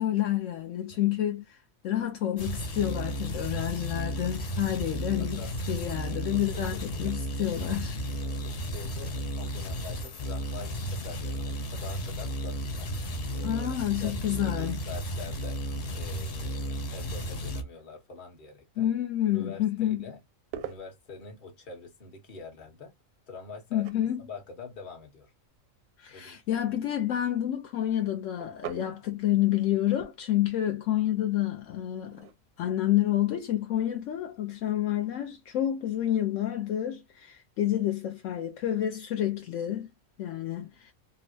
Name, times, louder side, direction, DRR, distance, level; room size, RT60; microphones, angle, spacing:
voice 1, 0.0-1.6 1.8-8.0 13.4-14.8 18.8-20.1 23.7-24.2 26.0-32.3 32.6-39.9 40.2-40.9, left 12 dB, 75° left, 0.9 m, -29 dB
sound 1, 2.4-17.6, equal, 55° left, 0.4 m, -34 dB
voice 2, 5.2-5.5 6.3-7.1 8.2-12.9 13.3-15.6 15.9-18.9 19.3-20.2 20.6-22.9 23.3-23.9 24.2-25.3 26.1-26.8, left 4 dB, 40° left, 1.1 m, -45 dB
sound 2, 19.9-34.8, right 9 dB, 85° right, 1.0 m, -50 dB
3.8 x 2.0 x 2.6 m
omnidirectional pair, 1.4 m